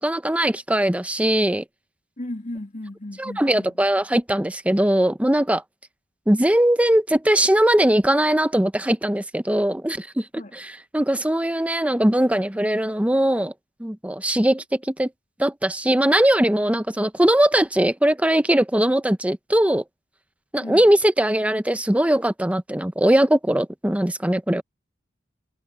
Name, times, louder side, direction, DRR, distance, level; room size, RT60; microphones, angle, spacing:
voice 1, 0.0-1.6 3.2-5.6 6.3-10.3 10.5-13.5 13.8-15.1 15.4-19.8 20.5-24.6, right 1 dB, 5° right, 0.7 m, -20 dB
voice 2, 2.2-3.8 10.3-10.5 20.6-20.9, left 1 dB, 45° left, 2.5 m, -35 dB
head